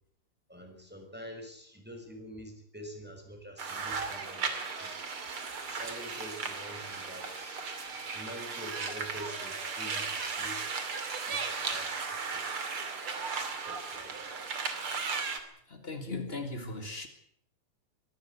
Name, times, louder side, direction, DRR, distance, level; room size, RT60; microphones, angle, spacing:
voice 1, 0.5-4.9 5.7-7.6 8.1-10.6 11.3-11.4 11.7-12.4 13.6-14.2, equal, ahead, 4 dB, 5.2 m, -46 dB
sound 1, 3.6-15.4, right 5 dB, 35° right, 2.9 m, -36 dB
voice 2, 15.7-17.1, left 3 dB, 85° left, 6 dB, 0.5 m, -38 dB
23.5 x 16.5 x 8.2 m, 0.67 s
omnidirectional pair, 4.8 m